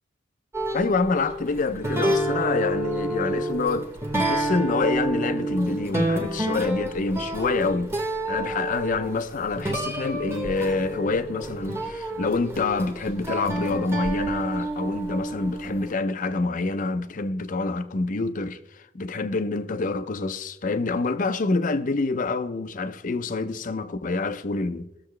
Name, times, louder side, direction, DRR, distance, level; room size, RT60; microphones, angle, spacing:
sound 1, 0.5-15.9, right 1 dB, 15° right, 1.0 m, -29 dB
voice 1, 0.7-25.1, left 3 dB, 40° left, 0.5 m, -27 dB
17.5 x 6.8 x 3.2 m
head